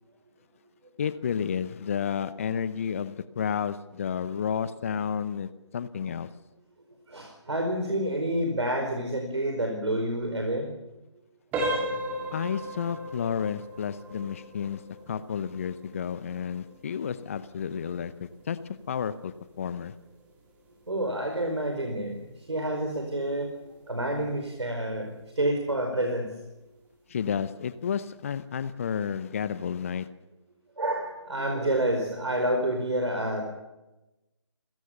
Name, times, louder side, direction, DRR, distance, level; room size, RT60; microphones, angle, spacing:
voice 1, 1.0-6.3 12.3-18.6 18.9-19.9 27.1-30.1, left 7 dB, 30° left, 15 dB, 0.7 m, -31 dB
voice 2, 7.1-10.7 20.9-22.1 22.5-23.5 23.9-25.1 25.3-26.3 30.8-33.4, right 1 dB, 65° right, 3 dB, 4.8 m, -28 dB
sound 1, 11.5-22.2 22.5-22.8 23.4-23.5 24.0-24.1, right 1 dB, 10° right, 2.8 m, -37 dB
29.5 x 15.5 x 7.1 m, 1.0 s
figure-of-eight pair, 150°, 15 cm